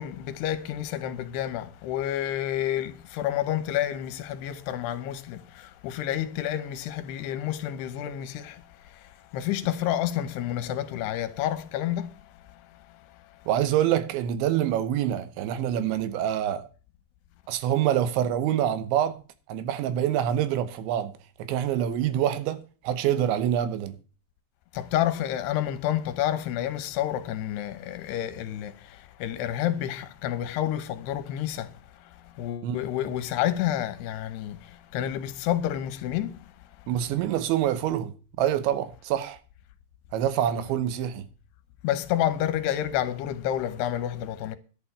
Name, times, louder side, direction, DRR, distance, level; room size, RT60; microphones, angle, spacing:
voice 1, 0.0-12.2 12.5-12.6 24.7-36.4 41.8-44.6, left 11 dB, 75° left, 2.7 m, -29 dB
voice 2, 13.5-16.6 17.5-19.2 19.5-24.0 32.6-32.8 36.9-39.4 40.1-41.3, right 11 dB, 80° right, 3.2 m, -26 dB
11.5 x 6.9 x 7.9 m
omnidirectional pair, 5.3 m